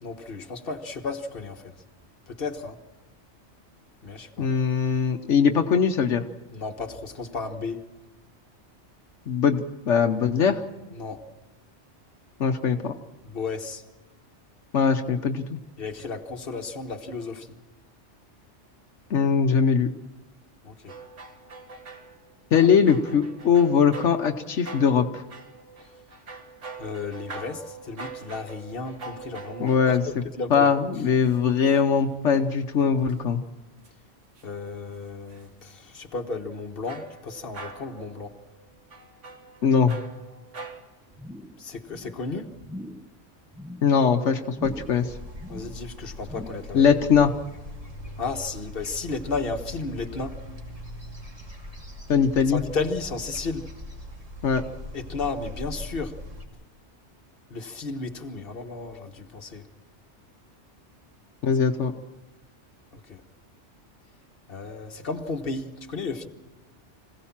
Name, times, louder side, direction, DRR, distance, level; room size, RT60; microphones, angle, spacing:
voice 1, 0.0-1.7 2.3-2.8 4.0-4.5 6.5-7.8 10.9-11.2 13.2-13.8 15.8-17.6 20.6-20.9 26.8-30.0 30.4-30.7 34.4-38.4 41.6-42.6 45.5-46.9 48.2-50.4 52.5-53.7 54.9-56.2 57.5-59.7 63.1-63.2 64.5-66.3, left 3 dB, 50° left, 1.6 m, -33 dB
voice 2, 4.4-6.2 9.3-10.6 12.4-12.9 14.7-15.6 19.1-19.9 22.5-25.2 29.6-30.0 30.5-33.4 39.6-40.0 43.8-45.1 46.7-47.3 52.1-52.6 54.4-54.6 61.4-61.9, left 6 dB, 80° left, 1.2 m, -21 dB
sound 1, 20.9-30.4 31.2-33.1 33.8-33.9 34.4-34.7 35.3-35.5 36.9-40.8, right 3 dB, 85° right, 2.0 m, -43 dB
sound 2, 41.1-41.6 41.9-42.2 42.6-43.1 43.5-43.9 44.5-45.0 45.3-45.8 46.2-46.8 47.1-47.2, left 1 dB, 5° right, 0.9 m, -41 dB
sound 3, 44.6-56.4, left 1 dB, 30° right, 2.6 m, -41 dB
25.5 x 16.5 x 7.3 m
omnidirectional pair, 1.2 m